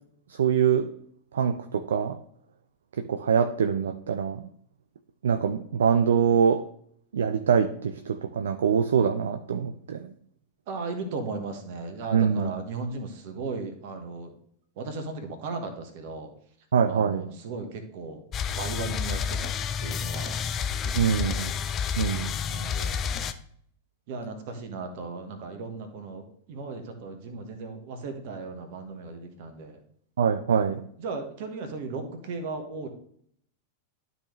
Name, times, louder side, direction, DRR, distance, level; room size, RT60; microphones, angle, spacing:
voice 1, 0.4-0.9 1.3-2.2 3.0-4.5 5.2-6.6 7.1-10.1 12.1-12.5 16.7-17.2 21.0-21.5 22.0-22.3 30.2-30.8, right 7 dB, 65° right, 9 dB, 0.4 m, -24 dB
voice 2, 10.7-14.3 14.8-16.3 16.9-18.2 18.6-19.5 19.8-20.4 20.8-21.6 22.5-23.0 24.1-29.8 31.0-32.9, right 3 dB, 50° right, 6 dB, 1.4 m, -36 dB
sound 1, 18.3-23.3, left 7 dB, 30° left, 0.5 m, -30 dB
12.0 x 4.0 x 3.2 m, 0.65 s
figure-of-eight pair, 90°, 0 cm